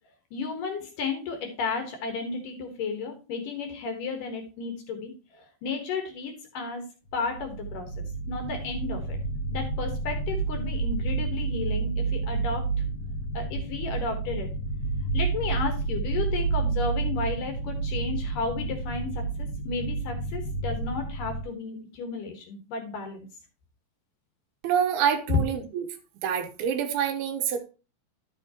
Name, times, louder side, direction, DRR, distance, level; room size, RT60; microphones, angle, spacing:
voice 1, 0.3-6.9 7.1-9.2 9.5-12.7 13.3-14.5 15.1-19.2 19.6-23.3 25.3-25.4, left 4 dB, 65° left, 5 dB, 2.6 m, -33 dB
sound 1, 7.1-21.4, right 4 dB, 45° left, 1.7 m, -30 dB
voice 2, 24.6-25.9 26.2-27.6, right 8 dB, 75° right, 7 dB, 2.7 m, -26 dB
11.5 x 7.1 x 2.9 m, 0.32 s
omnidirectional pair, 4.8 m